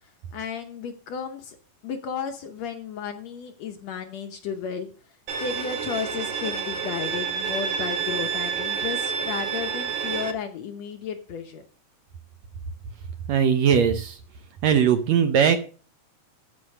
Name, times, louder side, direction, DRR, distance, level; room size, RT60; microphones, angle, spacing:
voice 1, 0.3-1.6 1.8-4.9 5.4-11.6, left 6 dB, 65° left, 6 dB, 1.8 m, -33 dB
Bowed string instrument, 5.3-10.3, right 7 dB, 85° right, 3.0 m, -29 dB
voice 2, 13.3-14.2 14.6-15.6, right 7 dB, 70° right, 7 dB, 1.8 m, -19 dB
13.0 x 5.6 x 6.5 m, 0.39 s
omnidirectional pair, 3.8 m